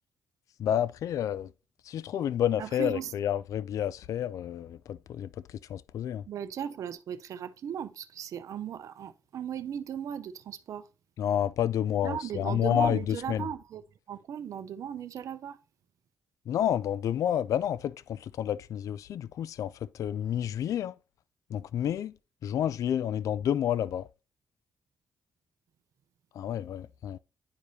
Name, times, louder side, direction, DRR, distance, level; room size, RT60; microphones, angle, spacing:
voice 1, 0.6-1.5 1.9-5.3 5.7-6.2 11.2-13.5 16.5-20.9 21.5-22.1 22.4-24.1 26.4-27.2, left 10 dB, 70° left, 0.3 m, -29 dB
voice 2, 2.6-3.1 6.3-10.9 12.0-13.8 14.1-15.6, right 9 dB, 70° right, 0.6 m, -37 dB
10.5 x 4.8 x 2.7 m
cardioid pair, 80°, 6 cm